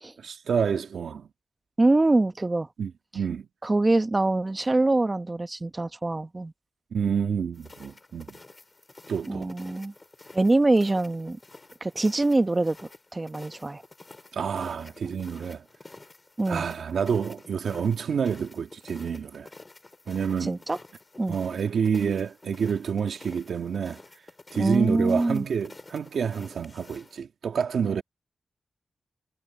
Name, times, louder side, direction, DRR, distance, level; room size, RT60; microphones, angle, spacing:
voice 1, 0.2-1.3 2.8-3.5 6.9-8.4 9.1-9.5 14.3-15.7 16.5-19.5 20.1-20.6 21.3-24.0 24.5-28.0, right 7 dB, 85° right, 1.9 m, -28 dB
voice 2, 1.8-2.7 3.6-6.5 9.3-9.9 10.3-11.4 11.8-13.8 16.4-16.7 20.4-20.8 21.2-21.4 24.5-25.4, right 2 dB, 30° right, 1.4 m, -24 dB
sound 1, 7.5-27.2, left 2 dB, 35° left, 5.0 m, -50 dB
cardioid pair, 50°, 0 cm